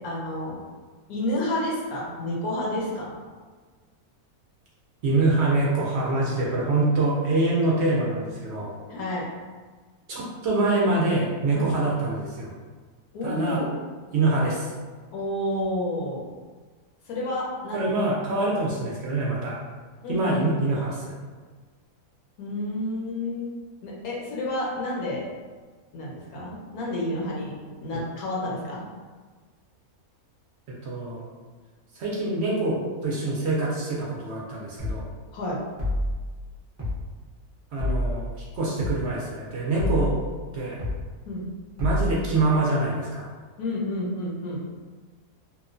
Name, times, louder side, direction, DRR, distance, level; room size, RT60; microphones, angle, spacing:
voice 1, 0.0-0.6 1.1-3.2 8.9-9.2 11.5-11.7 13.1-13.8 15.1-16.3 17.1-17.9 20.0-20.3 22.4-23.5 23.8-25.2 25.9-27.5 27.8-28.8 35.3-35.6 41.3-41.5 43.6-44.6, left 1 dB, 75° left, -4 dB, 1.1 m, -30 dB
voice 2, 5.0-8.7 10.1-12.5 13.2-13.6 14.1-14.7 17.7-19.6 20.1-21.1 30.8-31.2 31.9-35.1 37.7-38.3 38.5-40.2 40.5-40.8 41.8-43.3, right 2 dB, 65° right, -4 dB, 0.7 m, -25 dB
sound 1, 34.8-35.0 35.8-36.2 36.8-37.0 37.8-38.2 38.8-39.0 39.8-40.2 40.8-41.0 41.8-42.2, left 1 dB, 25° right, 0.4 m, -27 dB
3.0 x 2.1 x 2.4 m, 1.4 s
omnidirectional pair, 1.6 m